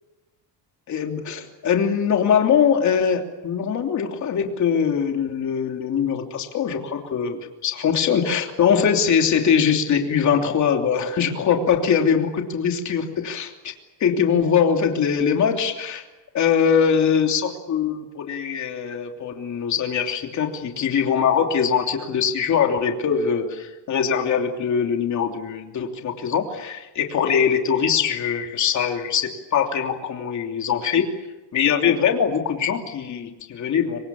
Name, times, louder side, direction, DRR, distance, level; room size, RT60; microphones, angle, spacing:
voice 1, 0.9-13.7 14.0-16.0 16.3-31.1 31.5-34.0, left 7 dB, 40° left, 3 dB, 3.1 m, -22 dB
26.5 x 25.0 x 7.2 m, 1.1 s
cardioid pair, 175°, 44 cm